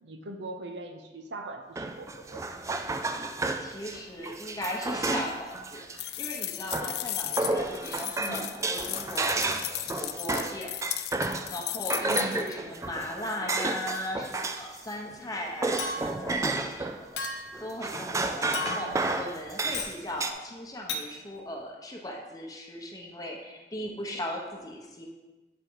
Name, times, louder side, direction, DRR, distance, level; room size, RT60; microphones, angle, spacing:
voice 1, 0.0-2.5 8.2-8.5 12.1-12.5 18.6-19.0, right 1 dB, 80° right, 5 dB, 0.7 m, -41 dB
sound 1, 1.8-6.0 6.7-11.6 11.9-14.8 15.1-17.0 17.5-20.3, right 3 dB, 20° right, 0.3 m, -31 dB
voice 2, 3.6-10.7 11.5-25.1, left 1 dB, 20° left, 0 dB, 0.9 m, -38 dB
sound 2, 6.0-12.5, left 14 dB, 60° left, 0.3 m, -35 dB
Chink clink, 15.8-16.3 17.2-17.6 18.5-19.0 19.7-20.0 20.9-21.1, left 3 dB, 85° left, 0.8 m, -34 dB
8.3 x 3.8 x 4.6 m, 1.2 s
head